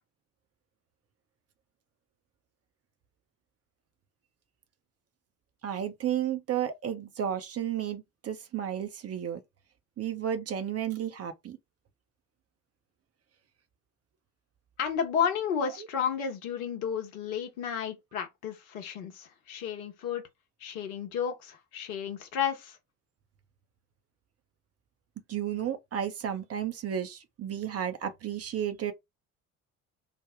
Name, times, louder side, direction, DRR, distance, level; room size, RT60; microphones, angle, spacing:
voice 1, 5.6-9.4 10.0-11.6 25.3-28.9, right 9 dB, 35° right, 0.7 m, -32 dB
voice 2, 14.8-20.2 20.6-22.8, left 7 dB, 70° left, 1.0 m, -32 dB
3.4 x 2.1 x 3.4 m
figure-of-eight pair, 55°, 43 cm